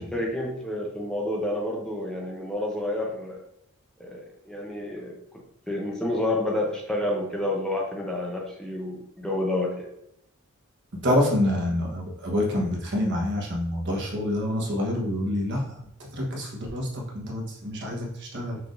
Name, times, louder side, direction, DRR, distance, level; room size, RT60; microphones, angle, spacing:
voice 1, 0.0-3.4 4.0-5.2 5.7-9.9, left 1 dB, 5° left, -2 dB, 0.6 m, -29 dB
voice 2, 11.0-15.8 16.1-18.6, left 1 dB, 55° right, -1 dB, 1.2 m, -27 dB
5.9 x 3.5 x 2.6 m, 0.76 s
head